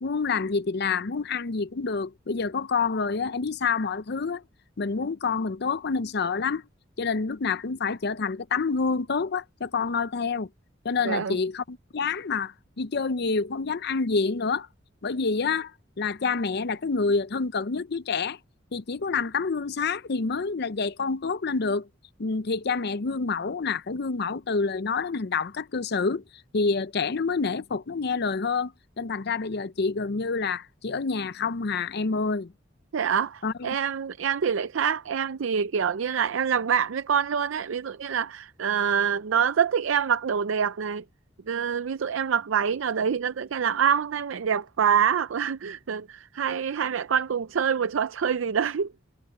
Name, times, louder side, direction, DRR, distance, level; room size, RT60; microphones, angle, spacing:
voice 1, 0.0-4.4 4.8-6.6 7.0-10.5 10.8-14.7 15.0-15.7 16.0-18.4 18.7-21.9 22.2-26.2 26.5-32.5 33.4-33.5, left 4 dB, 55° left, 0.6 m, -27 dB
voice 2, 11.0-11.4 32.9-41.0 41.5-48.9, right 7 dB, 80° right, 0.5 m, -26 dB
head